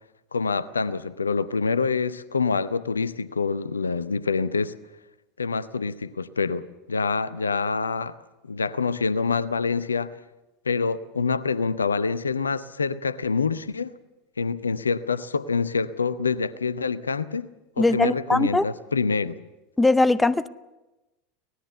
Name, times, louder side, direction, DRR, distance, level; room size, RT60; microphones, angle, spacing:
voice 1, 0.3-4.7 5.4-8.2 8.5-10.2 10.7-14.0 14.4-17.5 17.8-19.4, left 4 dB, 80° left, 0.7 m, -26 dB
voice 2, 17.8-18.7 19.8-20.5, left 2 dB, 10° left, 0.7 m, -20 dB
25.0 x 18.5 x 6.9 m
figure-of-eight pair, 80°, 0 cm